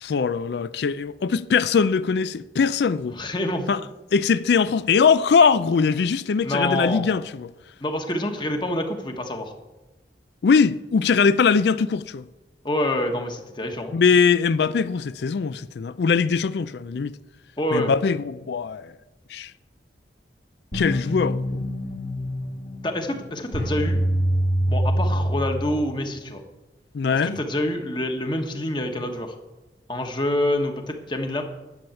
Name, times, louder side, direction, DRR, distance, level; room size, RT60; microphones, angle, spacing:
voice 1, 0.0-3.2 3.7-3.8 4.1-7.5 10.4-12.3 13.9-17.2 17.7-18.9 19.3-19.5 20.7-21.7 26.9-27.4, left 5 dB, 70° left, 0.4 m, -21 dB
voice 2, 3.1-3.7 6.4-7.0 7.8-9.5 12.6-13.9 17.6-17.9 22.8-24.0 24.7-26.4 27.1-29.3 29.9-31.4, left 1 dB, 25° left, 1.3 m, -26 dB
sound 1, 20.7-26.3, equal, 50° left, 1.8 m, -25 dB
11.0 x 7.1 x 8.8 m
head